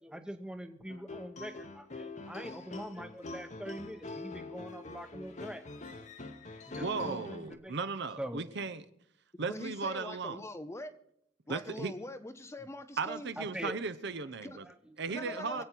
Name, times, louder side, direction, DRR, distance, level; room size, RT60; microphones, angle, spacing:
voice 1, 0.0-5.6 6.7-7.8 8.2-8.4 13.4-13.7 14.6-15.0 15.5-15.6, equal, 5° right, 0.9 m, -43 dB
sound 1, 0.9-7.5, left 3 dB, 35° left, 0.9 m, -44 dB
voice 2, 6.8-8.8 9.4-10.4 11.5-11.9 13.0-14.7 15.0-15.6, right 4 dB, 60° right, 0.8 m, -36 dB
voice 3, 9.3-10.9 11.5-13.3 14.4-14.6 15.1-15.6, left 1 dB, 15° left, 0.6 m, -43 dB
25.0 x 8.4 x 4.6 m
head